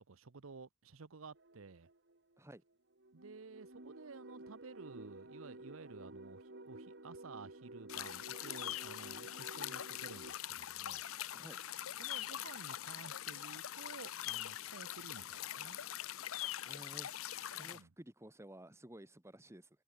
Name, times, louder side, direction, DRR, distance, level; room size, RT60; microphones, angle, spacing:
voice 1, 0.0-1.9 3.1-11.0 12.0-15.8 17.5-17.9, right 4 dB, 75° right, 0.8 m, -53 dB
sound 1, 1.4-2.4 2.9-10.3, right 2 dB, 55° right, 2.5 m, -53 dB
sound 2, 7.9-17.8, left 12 dB, 80° left, 0.7 m, -43 dB
voice 2, 11.3-11.7 16.6-17.2 17.5-19.7, right 1 dB, 15° right, 1.7 m, -54 dB
head